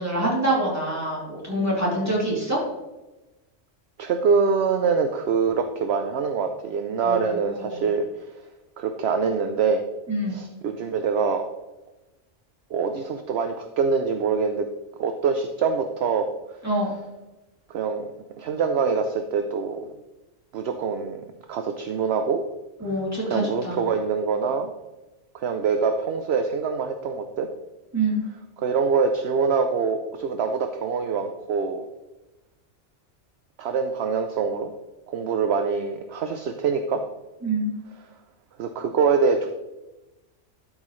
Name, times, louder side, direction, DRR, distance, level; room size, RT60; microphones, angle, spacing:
voice 1, 0.0-2.6 7.0-7.8 10.1-10.4 16.6-16.9 22.8-23.8 27.9-28.2 37.4-37.7, right 1 dB, 10° right, -5 dB, 2.9 m, -25 dB
voice 2, 4.0-8.3 8.8-9.8 10.3-11.4 12.7-14.7 15.0-16.3 17.7-18.1 18.4-20.0 20.5-21.2 21.5-22.4 23.3-24.7 25.4-27.5 28.6-31.9 33.6-34.7 35.1-37.0 38.6-39.5, right 5 dB, 60° right, 7 dB, 0.8 m, -24 dB
12.0 x 6.3 x 3.1 m, 1.1 s
omnidirectional pair, 1.3 m